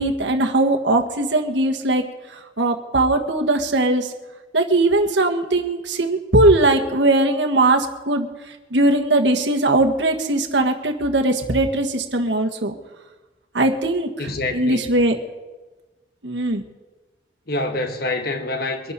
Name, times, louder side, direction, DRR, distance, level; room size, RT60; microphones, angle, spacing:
voice 1, 0.0-2.1 2.6-4.1 4.5-8.3 8.7-12.7 13.5-15.2 16.2-16.6, right 2 dB, 80° right, 1.6 m, -19 dB
voice 2, 14.2-14.9 17.5-18.9, left 2 dB, 55° left, 1.3 m, -26 dB
23.5 x 11.5 x 4.3 m
head